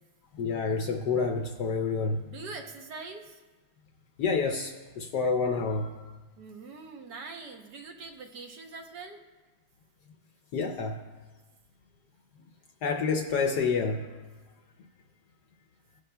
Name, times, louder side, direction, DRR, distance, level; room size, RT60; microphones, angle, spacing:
voice 1, 0.4-2.2 4.2-6.0 10.5-11.0 12.8-14.2, left 4 dB, 70° left, 4 dB, 1.0 m, -28 dB
voice 2, 2.3-3.4 6.4-9.2, right 4 dB, 65° right, 3 dB, 1.3 m, -43 dB
18.0 x 10.0 x 2.2 m, 1.3 s
omnidirectional pair, 2.2 m